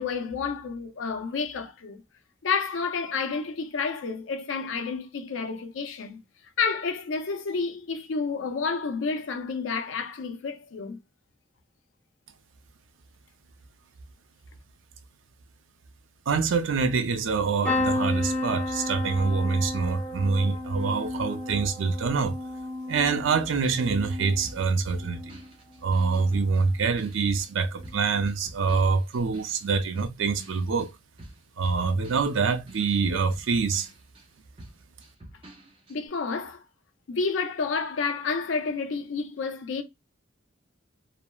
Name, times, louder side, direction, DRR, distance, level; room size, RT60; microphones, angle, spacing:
voice 1, 0.0-2.0 2.4-6.2 6.6-11.0 35.9-36.6 37.1-39.8, left 5 dB, 85° left, 0.5 m, -30 dB
voice 2, 16.3-22.4 22.9-25.4 25.8-30.9 31.6-33.9, right 4 dB, 85° right, 0.4 m, -25 dB
sound 1, 17.6-25.5 25.9-26.5 27.7-27.9 28.2-28.3, left 2 dB, 5° left, 0.8 m, -32 dB
sound 2, 23.3-27.6 27.8-34.3 34.6-36.0, right 1 dB, 25° right, 0.6 m, -49 dB
3.1 x 2.0 x 2.2 m
head